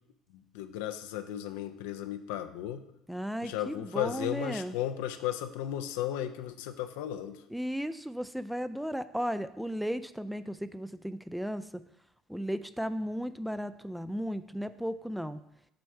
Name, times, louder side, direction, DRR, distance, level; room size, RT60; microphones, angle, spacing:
voice 1, 0.3-2.8 3.4-7.4, left 12 dB, 65° left, 9 dB, 0.5 m, -35 dB
voice 2, 3.1-4.8 7.5-11.8 12.3-15.4, equal, ahead, 12 dB, 0.4 m, -35 dB
7.8 x 4.2 x 5.7 m, 0.82 s
figure-of-eight pair, 60°, 0 cm